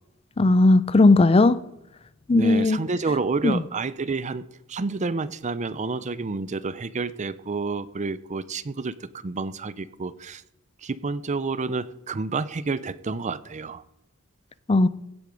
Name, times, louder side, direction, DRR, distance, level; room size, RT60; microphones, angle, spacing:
voice 1, 0.4-1.6 2.3-2.8 3.4-3.6 14.7-14.9, left 2 dB, 25° left, 17 dB, 0.4 m, -17 dB
voice 2, 2.3-10.4 10.8-13.8, right 4 dB, 35° right, 16 dB, 0.5 m, -29 dB
17.0 x 8.0 x 5.2 m, 0.87 s
head